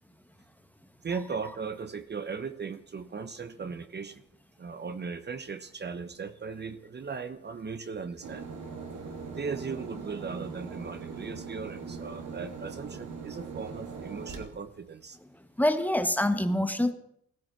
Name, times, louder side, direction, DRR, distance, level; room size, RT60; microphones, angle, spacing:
voice 1, 1.0-4.2 4.6-8.5 9.3-15.2, right 5 dB, 35° right, 10 dB, 1.1 m, -38 dB
sound 1, 8.2-14.4, right 5 dB, 70° right, 2.9 m, -40 dB
voice 2, 15.6-16.9, left 1 dB, 5° left, 9 dB, 1.4 m, -25 dB
15.5 x 14.0 x 6.1 m, 0.70 s
cardioid pair, 90°, 30 cm